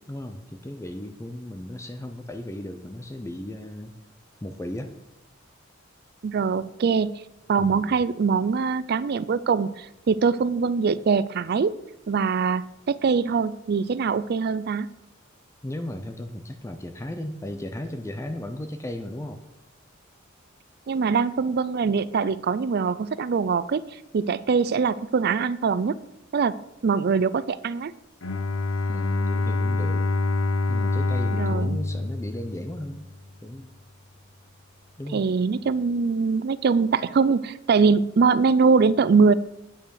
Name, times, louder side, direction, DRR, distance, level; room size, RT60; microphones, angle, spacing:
voice 1, 0.1-3.9 4.4-4.9 7.6-8.0 15.6-19.4 28.9-30.1 30.7-33.1 33.4-33.7 35.0-35.2, left 1 dB, 15° left, 7 dB, 0.6 m, -35 dB
voice 2, 6.2-7.1 7.5-11.8 12.1-14.9 20.9-25.9 26.3-27.9 31.3-31.8 35.1-39.3, right 5 dB, 50° right, 18 dB, 0.4 m, -23 dB
Bowed string instrument, 28.2-33.1, left 2 dB, 75° left, 0.8 m, -26 dB
9.1 x 5.7 x 6.5 m, 0.89 s
head